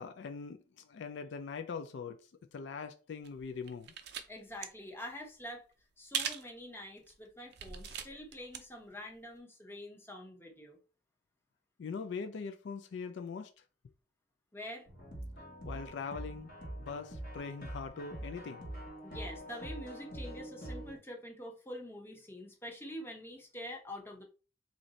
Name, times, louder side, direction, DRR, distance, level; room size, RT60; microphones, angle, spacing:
voice 1, 0.0-3.9 11.8-13.5 15.6-16.5 16.8-18.7, left 5 dB, 65° left, 0.3 m, -42 dB
sound 1, 3.2-4.3 4.5-4.7 6.1-6.5 7.0-7.1 7.5-8.6 8.9-9.0, right 8 dB, 55° right, 0.5 m, -39 dB
voice 2, 4.3-5.6 6.0-10.8 14.5-14.9 19.0-24.2, left 1 dB, 10° left, 0.7 m, -46 dB
sound 2, 14.9-21.0, right 1 dB, 45° left, 1.2 m, -44 dB
3.1 x 2.6 x 3.9 m
head